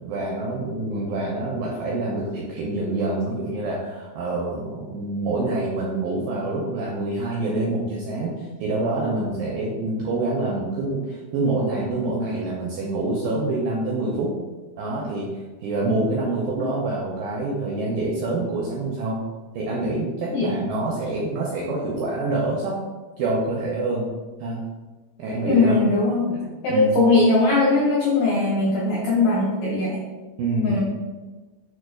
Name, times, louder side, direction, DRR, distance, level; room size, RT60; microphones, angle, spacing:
voice 1, 0.0-14.3 14.8-15.3 15.6-19.2 19.6-22.8 23.2-24.1 24.4-24.6 25.2-25.8 26.7-27.0 30.4-30.8, right 2 dB, 85° right, -4 dB, 2.0 m, -26 dB
voice 2, 25.4-30.0 30.6-30.8, left 2 dB, 90° left, -5 dB, 1.7 m, -20 dB
6.1 x 2.2 x 2.3 m, 1.2 s
omnidirectional pair, 4.4 m